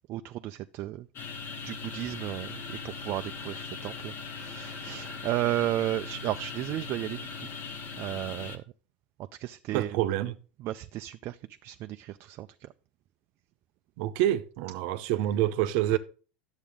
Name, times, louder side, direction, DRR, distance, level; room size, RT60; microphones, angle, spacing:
voice 1, 0.1-1.1 1.6-7.3 8.0-8.6 9.4-10.0 10.6-12.7 15.9-16.0, right 14 dB, 45° right, 0.4 m, -34 dB
sound 1, 1.1-8.6, left 5 dB, 40° left, 1.3 m, -40 dB
voice 2, 9.7-10.3 14.0-16.0, right 13 dB, 65° right, 0.8 m, -27 dB
10.0 x 7.2 x 3.6 m
hypercardioid pair, 105°, 6 cm